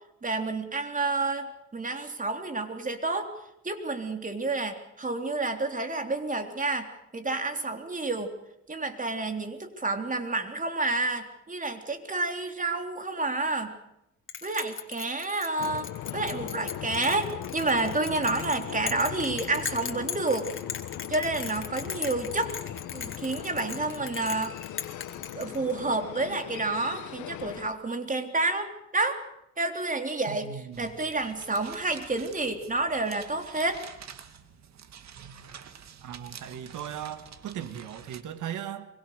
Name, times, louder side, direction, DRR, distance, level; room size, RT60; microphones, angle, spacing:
voice 1, 0.2-3.3 3.6-8.3 8.7-13.8 14.4-20.5 21.1-22.5 22.9-24.6 25.3-29.2 29.6-33.8, right 2 dB, 25° right, 3.5 m, -29 dB
Bell, 14.3-25.9, left 6 dB, 40° left, 3.5 m, -38 dB
sound 1, 15.6-27.7, left 11 dB, 80° left, 1.6 m, -39 dB
voice 2, 30.3-31.0 36.0-38.9, right 9 dB, 80° right, 2.2 m, -38 dB
sound 2, 30.7-38.2, right 8 dB, 60° right, 2.5 m, -48 dB
25.0 x 23.0 x 6.7 m
cardioid pair, 90°, 30 cm